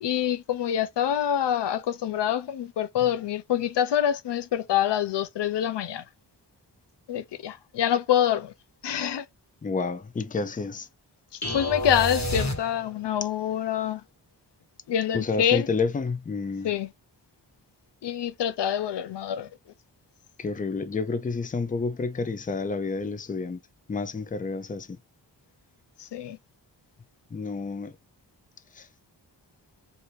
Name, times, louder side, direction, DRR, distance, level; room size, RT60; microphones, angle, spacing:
voice 1, 0.0-6.0 7.1-8.5 8.8-9.3 11.5-14.0 14.9-15.7 16.6-16.9 18.0-19.5 26.0-26.4, left 10 dB, 85° left, 0.6 m, -26 dB
voice 2, 9.6-10.9 15.1-16.7 20.4-23.6 23.9-24.9 27.3-27.9 28.8-28.9, left 4 dB, 20° left, 0.5 m, -29 dB
sound 1, 11.4-13.1, left 1 dB, 40° left, 1.4 m, -30 dB
2.7 x 2.6 x 3.1 m
wide cardioid pair, 105°, 41 cm